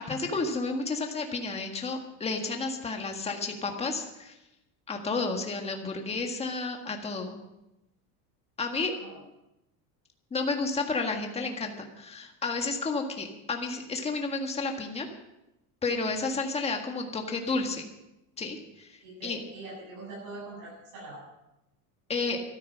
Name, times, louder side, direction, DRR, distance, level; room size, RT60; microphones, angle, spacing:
voice 1, 0.0-4.3 4.9-7.4 8.6-9.0 10.3-15.1 15.8-17.9 18.4-19.4 22.1-22.4, left 3 dB, 15° left, 3 dB, 1.7 m, -31 dB
voice 2, 8.9-9.2 19.0-21.2, right 2 dB, 50° right, -4 dB, 7.5 m, -43 dB
13.5 x 12.5 x 6.2 m, 0.93 s
cardioid pair, 165°, 41 cm